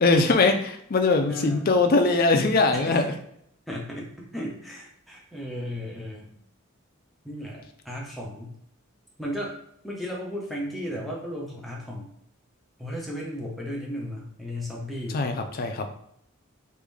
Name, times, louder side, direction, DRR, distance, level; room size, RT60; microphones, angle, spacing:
voice 1, 0.0-3.1 15.1-15.9, left 3 dB, 45° left, 5 dB, 0.4 m, -21 dB
voice 2, 1.3-1.7 2.7-3.0 3.7-6.3 7.2-8.5 9.2-9.5 9.8-12.1 12.8-15.2, equal, ahead, -3 dB, 0.8 m, -35 dB
3.6 x 2.6 x 3.4 m, 0.72 s
head